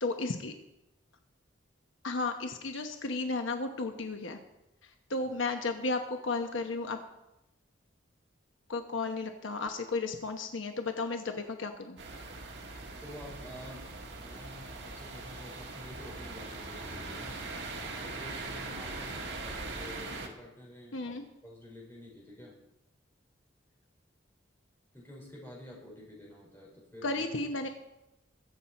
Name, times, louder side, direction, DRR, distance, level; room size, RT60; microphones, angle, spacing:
voice 1, 0.0-0.5 2.0-4.4 5.1-7.0 8.7-12.0 20.9-21.2 27.0-27.7, left 3 dB, 80° left, 5 dB, 1.0 m, -33 dB
sound 1, 12.0-20.3, right 3 dB, 60° right, 1.8 m, -41 dB
voice 2, 13.0-17.4 18.0-21.2 21.4-22.6 24.9-27.2 27.6-27.7, left 1 dB, 10° left, -4 dB, 4.7 m, -49 dB
22.0 x 7.4 x 4.3 m, 0.90 s
head